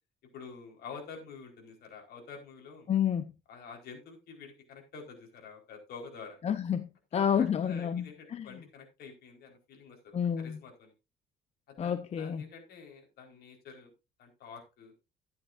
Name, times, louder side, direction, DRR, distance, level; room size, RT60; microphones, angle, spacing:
voice 1, 0.3-2.9 3.5-6.4 7.1-10.9 11.7-13.9 14.2-14.9, left 5 dB, 70° left, 4.5 m, -48 dB
voice 2, 2.9-3.3 6.4-8.6 10.1-10.6 11.8-12.5, left 8 dB, 40° left, 0.8 m, -30 dB
13.5 x 10.5 x 2.6 m
cardioid pair, 110°, 17 cm